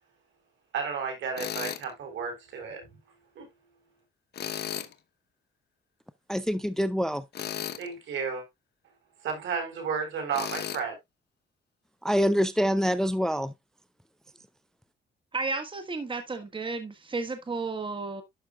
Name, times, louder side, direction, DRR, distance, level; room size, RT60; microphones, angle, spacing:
voice 1, 0.7-2.9 3.4-3.5 7.8-8.4 9.2-11.0, right 6 dB, 75° right, 3.8 m, -32 dB
Tools, 1.4-1.8 4.3-4.9 7.3-7.9 10.3-10.8, left 9 dB, 55° left, 0.9 m, -34 dB
voice 2, 6.3-7.2 12.0-13.5, equal, 5° left, 0.4 m, -25 dB
voice 3, 15.3-18.2, right 3 dB, 25° right, 1.5 m, -33 dB
12.0 x 5.6 x 2.3 m
cardioid pair, 90°, 20 cm